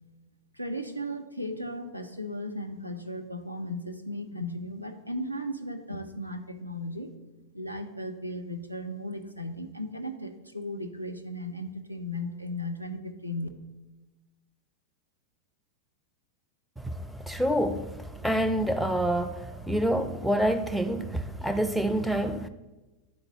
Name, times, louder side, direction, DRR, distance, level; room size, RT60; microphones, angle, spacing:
voice 1, 0.5-7.1 7.5-13.5, left 1 dB, 90° right, 0.5 m, -36 dB
voice 2, 16.8-22.5, right 1 dB, ahead, 0.4 m, -27 dB
9.7 x 3.9 x 2.9 m
figure-of-eight pair, 90°, 0 cm